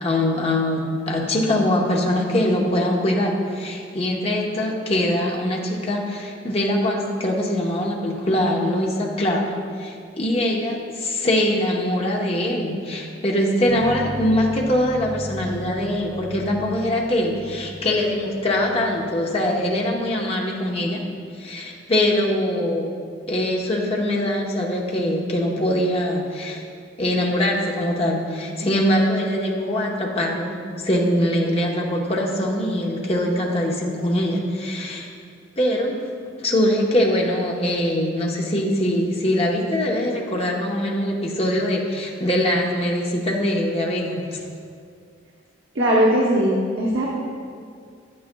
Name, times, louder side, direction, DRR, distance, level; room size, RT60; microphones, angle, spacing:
voice 1, 0.0-9.5 9.8-21.0 21.4-22.9 23.3-26.6 27.0-30.6 30.8-35.1 35.6-36.0 36.4-44.4, left 1 dB, 30° left, -1 dB, 0.9 m, -22 dB
sound 1, 13.6-19.2, left 1 dB, 10° left, 1.2 m, -36 dB
voice 2, 45.7-47.1, equal, 80° right, -4 dB, 1.0 m, -19 dB
9.8 x 8.7 x 2.2 m, 2.2 s
head